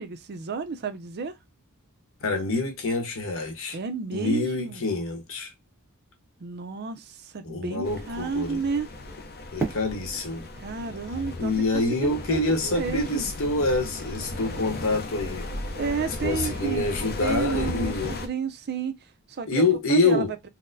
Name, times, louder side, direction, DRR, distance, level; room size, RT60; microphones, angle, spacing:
voice 1, 0.0-1.4 3.7-4.8 6.4-8.9 10.6-13.3 15.8-16.9 17.2-18.9 19.3-20.2, right 5 dB, 50° right, 0.5 m, -31 dB
voice 2, 2.2-3.8 4.1-5.5 7.4-8.6 9.5-10.5 11.4-15.5 16.2-18.2 19.5-20.3, left 2 dB, 65° left, 0.9 m, -26 dB
sound 1, 7.8-18.3, left 2 dB, 45° left, 0.5 m, -36 dB
Fireworks, 9.6-12.6, right 3 dB, 10° right, 1.2 m, -36 dB
4.1 x 2.0 x 2.6 m
head